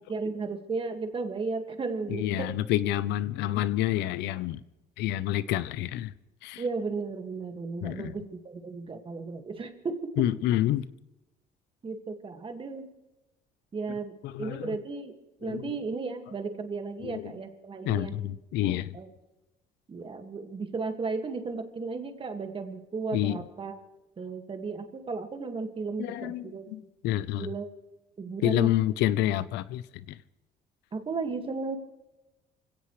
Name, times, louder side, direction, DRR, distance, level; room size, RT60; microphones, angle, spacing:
voice 1, 0.1-2.6 6.6-10.3 11.8-12.9 13.7-15.1 15.4-18.3 18.9-19.1 19.9-23.7 24.2-26.6 27.4-27.7 28.2-28.7 30.9-31.8, right 4 dB, 30° right, 2.0 m, -34 dB
voice 2, 2.1-4.6 5.0-6.1 6.4-6.6 7.8-8.1 10.2-10.9 14.2-14.8 15.4-15.8 17.0-17.3 17.8-19.0 23.1-23.4 26.0-27.5 28.4-30.2, left 13 dB, 90° left, 0.7 m, -28 dB
26.0 x 16.5 x 3.2 m
cardioid pair, 110°, 17 cm